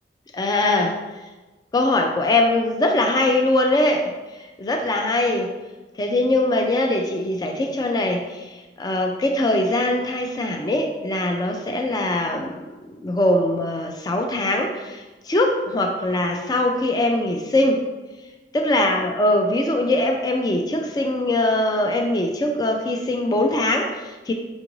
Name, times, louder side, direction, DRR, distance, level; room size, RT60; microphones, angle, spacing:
voice 1, 0.3-1.0 1.7-4.1 4.6-5.5 6.0-12.6 13.0-17.8 18.5-24.3, left 1 dB, 20° left, 3 dB, 0.3 m, -22 dB
5.2 x 2.5 x 3.0 m, 1.2 s
head